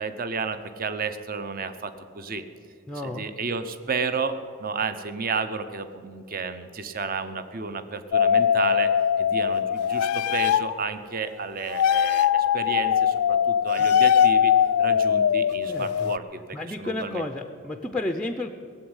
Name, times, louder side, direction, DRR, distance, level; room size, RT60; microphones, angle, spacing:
voice 1, 0.0-2.4 3.0-16.4 16.8-17.2, right 4 dB, 40° right, 11 dB, 0.7 m, -32 dB
voice 2, 2.9-3.3 13.8-13.9 15.7-16.1 16.5-18.5, left 2 dB, 5° left, 6 dB, 0.5 m, -32 dB
sound 1, 8.1-10.8 11.7-16.2, left 8 dB, 85° left, 0.3 m, -21 dB
16.5 x 8.0 x 9.8 m, 2.4 s
head